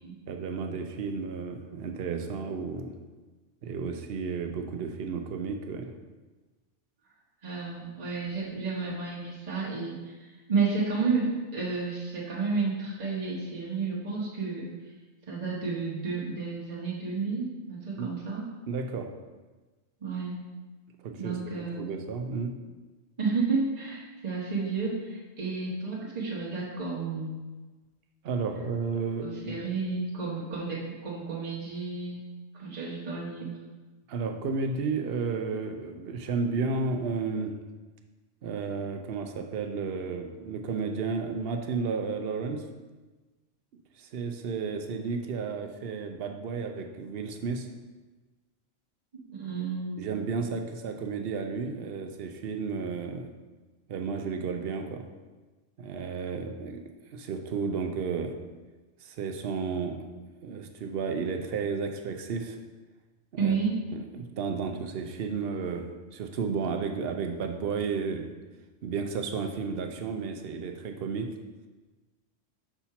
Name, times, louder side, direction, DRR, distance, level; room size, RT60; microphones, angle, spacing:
voice 1, 0.3-3.0 3.6-5.9 18.0-18.1 18.7-19.1 21.0-21.4 21.8-22.6 28.2-29.6 34.1-37.6 38.4-42.7 44.0-47.7 50.0-53.3 53.9-55.1 55.8-58.4 59.0-60.1 60.4-62.6 63.3-63.6 63.9-68.3 68.8-71.4, right 5 dB, 55° right, 5 dB, 0.8 m, -32 dB
voice 2, 7.4-14.7 15.3-18.5 20.0-20.4 21.2-22.0 23.2-27.4 29.2-32.2 32.5-33.5 49.3-50.1 63.4-63.8, right 4 dB, 35° right, -6 dB, 1.3 m, -31 dB
5.8 x 4.3 x 5.7 m, 1.3 s
omnidirectional pair, 1.3 m